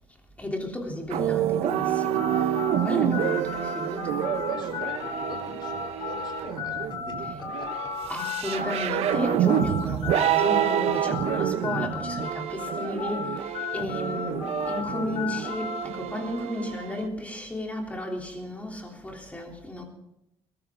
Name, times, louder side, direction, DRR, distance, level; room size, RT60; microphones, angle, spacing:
voice 1, 0.4-4.3 8.1-19.8, left 1 dB, 15° left, 1 dB, 3.4 m, -34 dB
sound 1, 1.1-17.1, right 10 dB, 80° right, 0.8 m, -28 dB
sound 2, 2.2-12.3 12.6-15.8, left 6 dB, 75° left, 5.2 m, -34 dB
voice 2, 4.4-8.5, left 3 dB, 45° left, 2 dB, 4.0 m, -44 dB
21.5 x 13.5 x 3.8 m, 0.85 s
cardioid pair, 115°, 10 cm